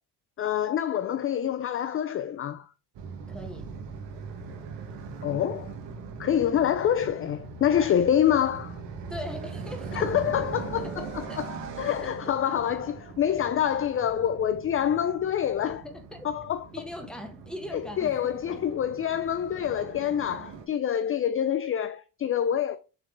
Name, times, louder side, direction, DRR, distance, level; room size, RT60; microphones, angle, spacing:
voice 1, 0.4-2.7 5.2-5.7 6.2-8.8 9.9-15.8 16.2-16.6 17.7-22.8, left 9 dB, 35° left, 0.4 m, -26 dB
sound 1, 2.9-20.6, right 5 dB, 80° right, 1.5 m, -40 dB
voice 2, 3.3-3.7 9.1-10.1 10.8-11.4 12.0-12.1 15.8-16.3 16.7-18.6, left 1 dB, ahead, 1.4 m, -40 dB
6.9 x 3.8 x 3.7 m
cardioid pair, 115°, 42 cm